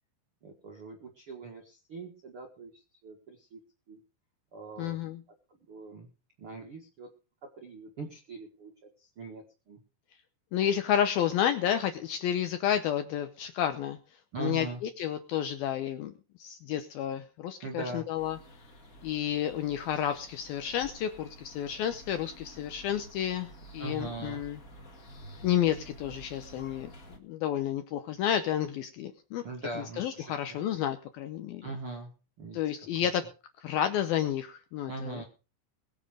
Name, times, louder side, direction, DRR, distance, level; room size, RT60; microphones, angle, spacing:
voice 1, 0.4-3.6 3.9-4.0 4.5-5.0 5.7-6.1 6.4-7.1 7.6-8.7 9.0-9.8 14.3-14.8 17.6-18.1 23.8-24.4 29.4-30.6 31.6-32.1 32.4-32.6 32.9-33.1 34.9-35.2, right 3 dB, 70° right, 2 dB, 1.3 m, -41 dB
voice 2, 4.8-5.2 10.5-14.0 14.4-14.7 15.0-16.1 16.4-18.4 19.0-24.6 25.4-26.9 27.2-29.4 30.0-31.7 32.5-33.3 33.6-35.2, left 10 dB, 80° left, 9 dB, 2.2 m, -30 dB
sound 1, 18.2-27.2, equal, 45° left, 1.1 m, -50 dB
21.5 x 7.3 x 5.0 m, 0.34 s
omnidirectional pair, 5.4 m